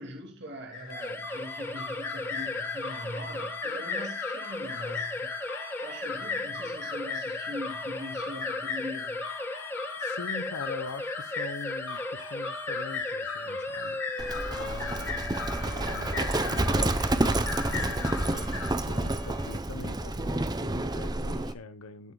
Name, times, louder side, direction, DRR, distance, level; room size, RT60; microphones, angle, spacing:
voice 1, 0.0-5.3 5.8-9.3, equal, 50° right, 2.6 m, -41 dB
sound 1, 0.7-18.7, left 5 dB, 60° left, 2.6 m, -37 dB
sound 2, 0.9-19.6, left 1 dB, 10° left, 1.5 m, -38 dB
voice 2, 10.0-18.4 18.8-22.1, left 3 dB, 90° left, 1.1 m, -42 dB
Livestock farm animals working animals, 14.2-21.5, right 2 dB, 20° right, 0.7 m, -29 dB
19.5 x 8.2 x 2.3 m
head